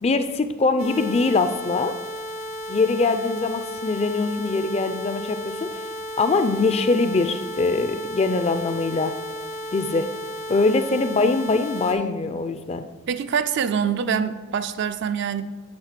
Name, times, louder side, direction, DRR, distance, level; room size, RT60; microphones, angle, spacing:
voice 1, 0.0-1.9 2.7-5.8 6.2-9.1 9.7-10.1 10.5-12.8, left 3 dB, 30° left, 10 dB, 0.4 m, -22 dB
sound 1, 0.8-11.9, equal, 80° left, 1.9 m, -34 dB
voice 2, 13.1-15.5, right 7 dB, 50° right, 12 dB, 0.3 m, -25 dB
8.8 x 4.0 x 5.8 m, 1.3 s
head